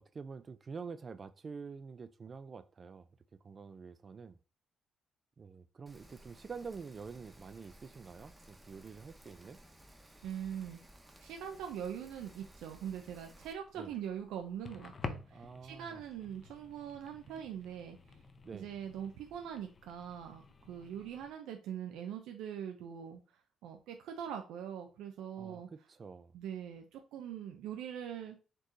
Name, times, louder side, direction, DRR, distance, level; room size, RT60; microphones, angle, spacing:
voice 1, 0.0-3.1 3.4-4.4 5.4-9.6 13.8-13.9 15.3-16.0 18.4-18.7 25.4-26.3, right 5 dB, 40° right, 0.4 m, -47 dB
Rain, 5.9-13.5, right 1 dB, 10° right, 0.9 m, -58 dB
voice 2, 10.2-10.8 11.2-18.2 18.5-25.7 26.3-28.4, right 9 dB, 90° right, 0.6 m, -43 dB
sound 1, 13.1-21.3, left 4 dB, 35° left, 0.7 m, -50 dB
4.4 x 3.0 x 4.0 m
cardioid pair, 90°, 0 cm